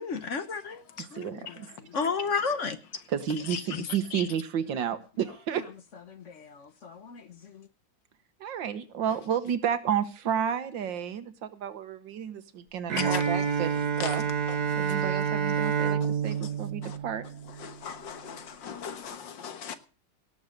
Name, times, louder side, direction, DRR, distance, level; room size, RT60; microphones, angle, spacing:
voice 1, 0.0-1.4 1.8-2.8 6.1-7.7, left 5 dB, 45° left, 1.1 m, -33 dB
voice 2, 1.1-1.7 3.1-5.6 8.4-13.7 14.0-14.2 14.8-17.2, right 8 dB, 80° right, 1.8 m, -31 dB
voice 3, 3.5-3.9 4.1-4.2 13.0-13.2 14.0-14.2 14.7-15.0 16.2-16.5 16.8-17.0 17.6-19.7, left 7 dB, 75° left, 2.0 m, -38 dB
Bowed string instrument, 12.9-17.8, right 6 dB, 60° right, 1.6 m, -28 dB
18.0 x 7.0 x 6.5 m
omnidirectional pair, 2.0 m